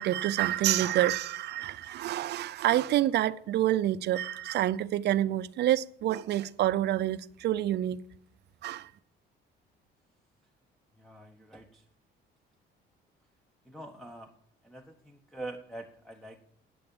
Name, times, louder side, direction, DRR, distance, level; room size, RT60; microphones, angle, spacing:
voice 1, 0.0-8.0 8.6-8.9, right 13 dB, 60° right, 0.5 m, -27 dB
voice 2, 11.0-11.8 13.7-14.3 14.6-16.4, right 2 dB, ahead, 0.8 m, -44 dB
9.0 x 7.7 x 7.0 m
cardioid pair, 110°, 19 cm